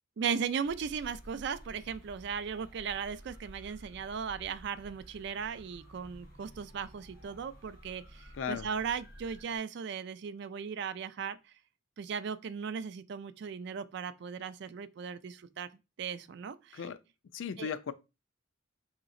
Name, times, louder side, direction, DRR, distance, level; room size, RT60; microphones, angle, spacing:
voice 1, 0.2-11.4 12.0-15.7 16.0-16.8 17.6-17.7, right 6 dB, 60° right, 0.3 m, -37 dB
sound 1, 0.6-9.6, equal, 45° left, 1.2 m, -52 dB
voice 2, 8.4-8.7 16.7-17.0 17.3-17.9, left 7 dB, 70° left, 0.4 m, -36 dB
4.8 x 2.9 x 2.5 m
head